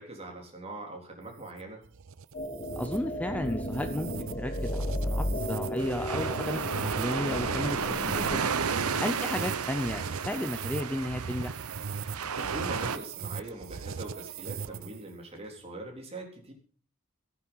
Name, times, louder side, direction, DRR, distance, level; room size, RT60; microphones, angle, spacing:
voice 1, 0.0-1.8 12.4-16.5, right 2 dB, 30° right, 1 dB, 3.9 m, -42 dB
sound 1, 1.2-15.1, right 5 dB, 65° right, 0.6 m, -40 dB
sound 2, 2.3-8.4, left 1 dB, 40° left, 2.2 m, -34 dB
voice 2, 2.8-8.5 9.0-11.6, left 1 dB, 5° left, 8 dB, 0.6 m, -34 dB
sound 3, 5.8-13.0, right 6 dB, 85° right, 1.0 m, -32 dB
15.5 x 9.4 x 5.6 m, 0.43 s
head